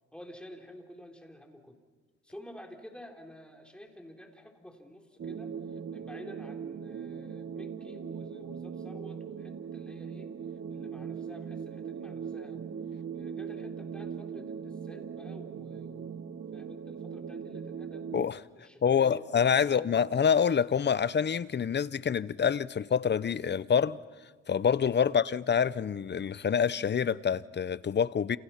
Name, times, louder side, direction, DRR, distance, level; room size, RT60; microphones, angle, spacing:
voice 1, 0.1-1.8 2.2-12.7 13.1-18.1 18.5-20.1 25.0-25.2, equal, 5° left, 4.0 m, -50 dB
sound 1, 5.2-18.3, right 7 dB, 45° right, 1.2 m, -40 dB
voice 2, 18.8-24.0 24.5-28.4, left 7 dB, 35° left, 0.8 m, -26 dB
29.0 x 28.5 x 5.9 m
cardioid pair, 90°, 30 cm